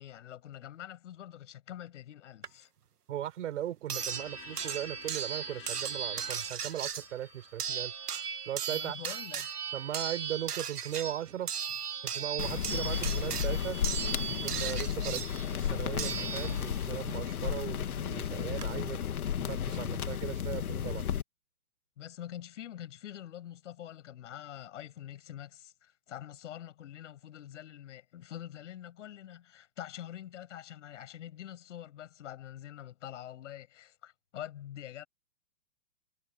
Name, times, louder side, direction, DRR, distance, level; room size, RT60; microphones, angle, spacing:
voice 1, 0.0-2.7 8.7-9.5 14.9-15.2 22.0-35.1, left 11 dB, 50° left, 7.2 m, -45 dB
sound 1, 2.4-2.5 3.9-16.9 18.2-18.3 18.6-18.7, right 7 dB, 80° right, 1.9 m, -37 dB
voice 2, 3.1-7.9 8.5-9.0 9.7-11.5 12.0-13.8 14.4-15.2 15.5-19.0 19.4-21.0, right 11 dB, 50° right, 7.0 m, -38 dB
sound 2, 4.0-9.9, left 31 dB, 30° left, 7.5 m, -53 dB
sound 3, 12.4-21.2, left 9 dB, 65° left, 2.3 m, -33 dB
hypercardioid pair, 145°, 46 cm